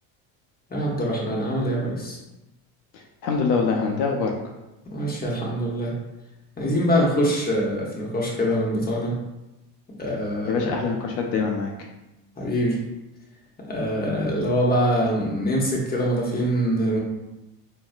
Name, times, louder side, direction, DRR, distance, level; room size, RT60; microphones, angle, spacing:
voice 1, 0.7-2.2 4.9-5.9 6.6-9.1 10.0-10.7 12.4-12.8 13.7-17.0, equal, 20° left, -3 dB, 0.9 m, -24 dB
voice 2, 2.9-4.3 10.4-11.7, left 5 dB, 85° left, 1 dB, 0.6 m, -24 dB
3.8 x 2.0 x 2.4 m, 0.97 s
supercardioid pair, 90°, 48 cm